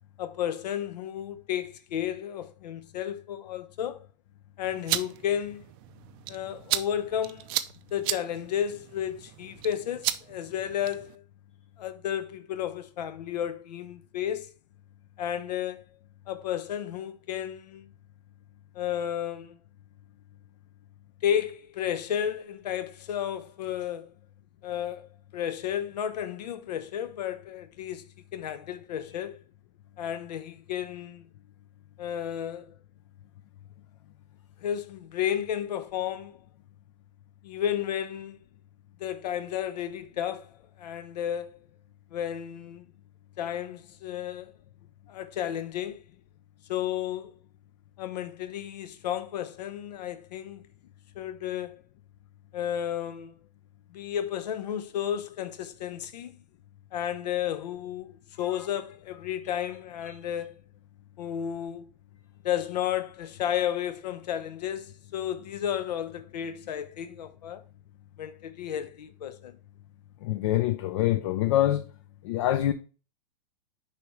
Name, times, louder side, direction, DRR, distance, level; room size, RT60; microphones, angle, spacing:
voice 1, 0.2-4.1 4.6-5.6 6.3-7.5 7.9-11.2 11.8-14.5 15.2-15.8 16.3-17.9 18.7-19.6 21.2-24.1 24.6-28.0 28.3-29.4 30.0-31.3 32.0-32.7 34.6-36.4 37.4-38.4 39.0-41.7 42.1-42.9 43.4-44.5 45.1-46.0 46.7-47.4 48.0-50.6 51.2-51.8 52.5-53.3 53.9-56.4 56.9-60.6 61.2-61.9 62.4-67.6 68.2-69.6, left 10 dB, 80° left, 0.8 m, -32 dB
sound 1, 4.6-11.2, right 15 dB, 35° right, 0.4 m, -35 dB
voice 2, 70.2-71.9 72.2-72.7, left 13 dB, 50° left, 0.4 m, -25 dB
6.8 x 4.9 x 3.1 m
supercardioid pair, 155°, 21 cm